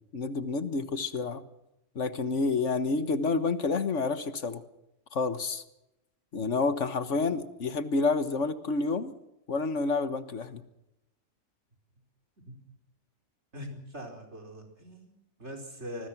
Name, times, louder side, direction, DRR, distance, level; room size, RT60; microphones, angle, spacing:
voice 1, 0.1-1.4 1.9-4.6 5.1-5.6 6.3-9.1 9.5-10.6, left 4 dB, 70° left, 11 dB, 1.7 m, -29 dB
voice 2, 13.5-16.1, equal, 65° right, 3 dB, 5.1 m, -42 dB
25.5 x 20.5 x 6.1 m, 0.87 s
omnidirectional pair, 1.3 m